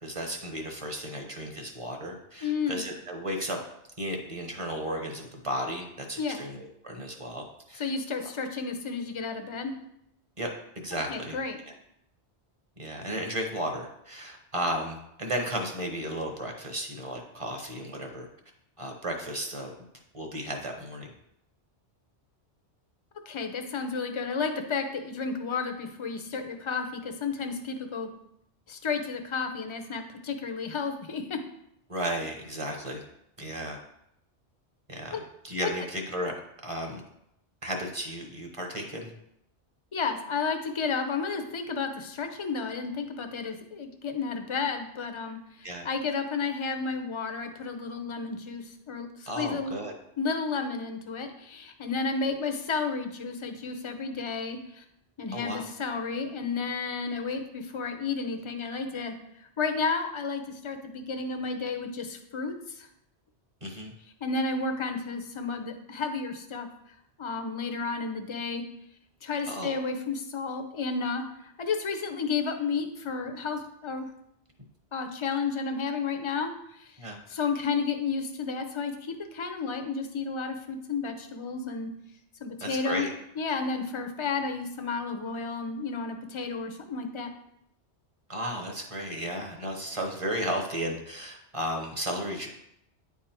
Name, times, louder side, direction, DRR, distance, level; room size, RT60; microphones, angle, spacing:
voice 1, 0.0-3.6 4.0-7.9 10.4-10.5 10.7-11.4 11.7-11.8 12.8-18.3 18.8-19.7 20.1-21.1 31.9-33.0 33.4-33.8 34.9-36.3 36.6-37.0 37.6-39.1 45.6-45.9 49.3-49.9 55.3-55.7 63.6-63.9 69.5-69.8 77.0-77.2 82.6-83.1 88.3-92.5, equal, 30° right, 2 dB, 1.0 m, -34 dB
voice 2, 2.4-2.9 6.2-6.4 7.8-9.7 11.1-11.6 23.3-28.1 28.7-31.4 35.1-35.2 35.6-35.7 39.9-49.7 50.2-54.8 55.2-59.1 59.6-62.9 64.2-66.7 67.2-68.6 69.2-74.1 74.9-76.5 76.8-76.9 77.3-81.9 82.4-83.1 83.4-87.3, left 4 dB, 30° left, 6 dB, 0.6 m, -32 dB
9.5 x 3.6 x 4.4 m, 0.77 s
omnidirectional pair, 1.2 m